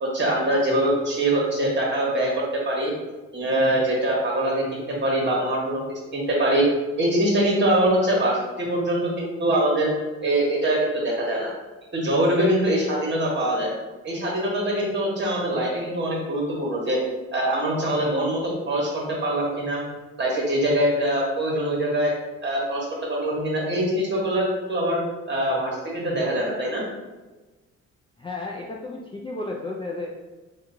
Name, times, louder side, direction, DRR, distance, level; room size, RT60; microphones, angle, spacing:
voice 1, 0.0-2.9 3.3-5.8 6.1-6.7 7.0-9.9 10.2-11.5 11.9-13.7 14.0-17.0 17.3-19.8 20.2-22.1 22.4-25.0 25.3-26.8, right 1 dB, 35° right, -2 dB, 1.2 m, -23 dB
voice 2, 28.2-30.1, left 2 dB, 15° left, -3 dB, 0.3 m, -33 dB
2.9 x 2.3 x 3.7 m, 1.2 s
cardioid pair, 90°, 30 cm